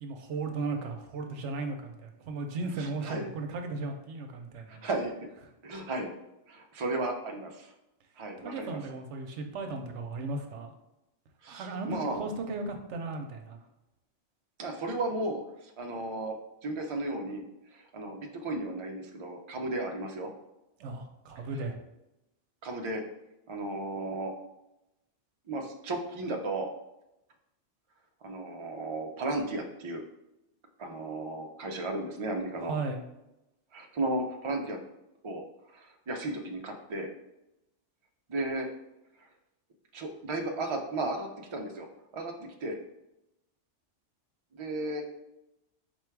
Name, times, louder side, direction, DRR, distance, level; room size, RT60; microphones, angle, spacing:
voice 1, 0.0-4.8 8.4-10.7 11.5-13.6 20.8-21.8 32.6-33.0, right 3 dB, 80° right, 5 dB, 0.9 m, -36 dB
voice 2, 2.8-3.3 4.7-5.3 5.6-6.1 6.5-7.7 8.2-8.8 11.4-12.2 14.6-16.4 16.6-17.4 17.7-20.3 22.6-23.0 23.5-24.3 25.5-26.7 28.2-30.0 30.8-32.7 33.7-34.8 35.2-35.4 35.7-37.1 38.3-38.7 39.9-41.9 42.1-42.8 44.5-45.0, right 2 dB, 50° right, 3 dB, 0.3 m, -34 dB
4.3 x 2.3 x 4.5 m, 0.90 s
omnidirectional pair, 1.2 m